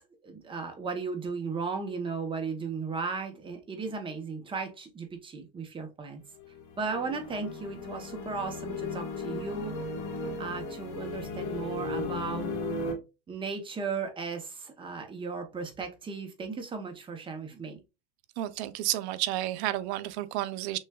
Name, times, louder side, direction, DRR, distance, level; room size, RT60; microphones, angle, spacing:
voice 1, 0.0-6.2 6.8-9.8 10.4-12.5 13.3-17.8, right 4 dB, 15° right, 0.7 m, -36 dB
sound 1, 6.4-12.9, left 3 dB, 70° left, 1.4 m, -36 dB
voice 2, 18.4-20.8, right 14 dB, 70° right, 0.5 m, -31 dB
6.2 x 2.2 x 2.2 m
cardioid pair, 155°, 34 cm